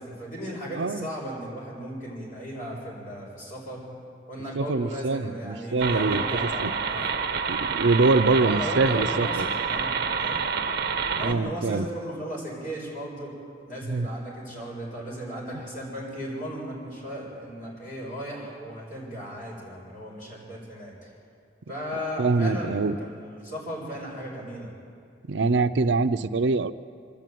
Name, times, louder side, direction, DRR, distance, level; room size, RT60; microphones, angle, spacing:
voice 1, 0.0-3.8 4.3-7.0 8.3-10.4 11.2-13.3 13.7-21.1 21.7-24.7, equal, 45° left, -4 dB, 7.5 m, -36 dB
voice 2, 0.7-1.1 4.6-6.2 6.6-6.7 7.5-9.4 11.1-11.9 13.9-14.1 22.2-22.9 25.3-26.7, right 3 dB, 75° right, 10 dB, 0.6 m, -24 dB
sound 1, 5.8-11.3, right 5 dB, 55° right, 1.3 m, -28 dB
28.0 x 10.0 x 9.3 m, 2.4 s
head